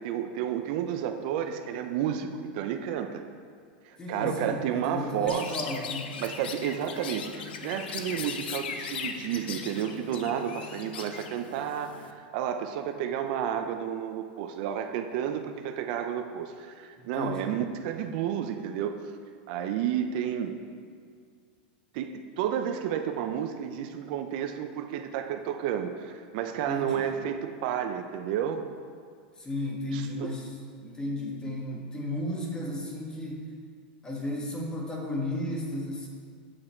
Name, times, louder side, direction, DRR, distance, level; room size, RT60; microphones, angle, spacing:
voice 1, 0.0-3.2 3.8-5.6 6.2-19.0 19.5-20.6 21.9-28.6 29.9-30.3, right 9 dB, 60° right, 6 dB, 0.6 m, -31 dB
voice 2, 4.0-6.1 17.0-17.6 26.5-27.1 29.4-33.5 34.0-36.1, left 1 dB, 15° left, -1 dB, 1.4 m, -34 dB
Chirp tweet, 5.3-12.1, left 6 dB, 85° left, 0.6 m, -38 dB
7.7 x 6.4 x 4.4 m, 2.1 s
supercardioid pair, 130°, 5 cm